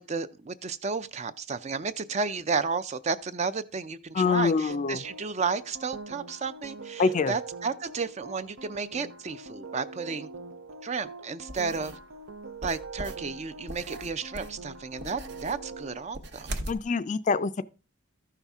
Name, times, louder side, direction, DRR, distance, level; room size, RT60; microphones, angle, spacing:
voice 1, 0.0-10.3 10.8-12.0 12.6-16.5, right 5 dB, 35° right, 0.4 m, -32 dB
voice 2, 4.1-5.0 7.0-7.3 16.7-17.6, left 4 dB, 35° left, 0.4 m, -25 dB
sound 1, 4.7-16.0, right 3 dB, 80° right, 0.7 m, -43 dB
sound 2, 11.5-12.0 12.6-16.8, right 1 dB, 55° right, 0.9 m, -40 dB
14.0 x 5.7 x 3.5 m
head